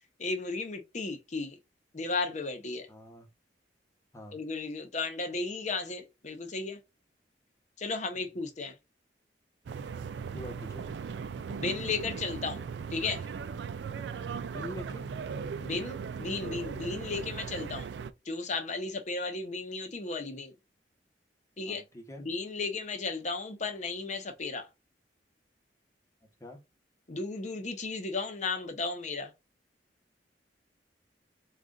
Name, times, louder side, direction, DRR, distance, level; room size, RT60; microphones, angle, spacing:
voice 1, 0.2-1.6 1.9-2.9 4.3-6.8 7.8-8.7 11.5-12.6 12.9-13.2 15.6-17.9 18.3-20.5 21.6-21.8 22.2-24.7 27.1-29.3, left 3 dB, 40° left, 0.8 m, -34 dB
voice 2, 2.9-3.3 4.1-4.4 8.1-8.3 10.3-10.9 14.5-15.1 21.7-22.2 26.4-26.6, left 1 dB, 15° left, 1.0 m, -44 dB
sound 1, 9.7-18.1, right 6 dB, 75° right, 0.3 m, -38 dB
3.7 x 2.4 x 3.7 m
head